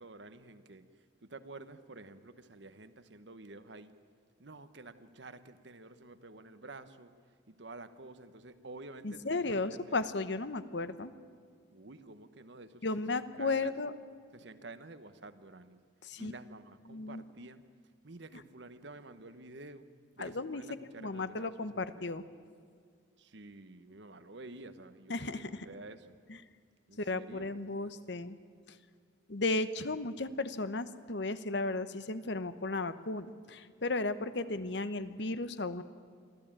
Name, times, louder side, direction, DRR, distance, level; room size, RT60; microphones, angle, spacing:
voice 1, 0.0-3.9 4.4-7.1 7.5-10.0 11.7-13.7 14.3-15.8 16.2-17.6 18.0-19.9 20.2-22.1 23.2-26.2 26.9-27.6, right 2 dB, 65° right, 11 dB, 1.2 m, -50 dB
voice 2, 9.0-11.1 12.8-13.9 16.0-16.3 16.9-17.2 20.2-20.6 21.0-22.2 25.1-25.7 27.0-28.4 28.7-28.8 29.3-35.8, left 3 dB, 65° left, 12 dB, 1.0 m, -35 dB
24.5 x 15.0 x 8.9 m, 2.1 s
head